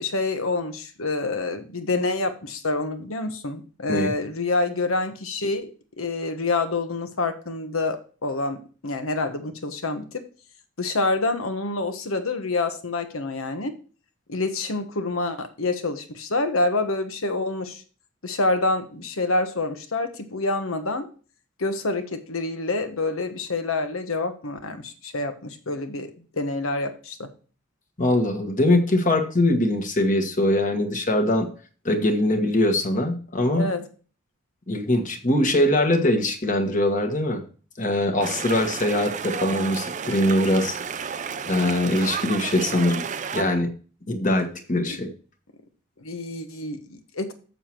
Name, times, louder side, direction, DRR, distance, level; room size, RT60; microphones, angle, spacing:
voice 1, 0.0-5.7 6.0-10.2 10.8-13.7 14.3-17.8 18.2-21.1 21.6-26.1 26.3-27.3 33.5-33.8 44.9-45.0 46.0-47.3, left 2 dB, 90° left, 8 dB, 1.3 m, -27 dB
voice 2, 28.0-31.5 31.8-33.7 34.7-37.4 37.8-40.8 41.5-43.0 43.3-43.7 44.1-45.1, left 1 dB, 40° left, 5 dB, 1.4 m, -22 dB
sound 1, 38.2-43.4, right 6 dB, 35° right, 0.5 m, -31 dB
7.2 x 6.8 x 4.5 m, 0.38 s
head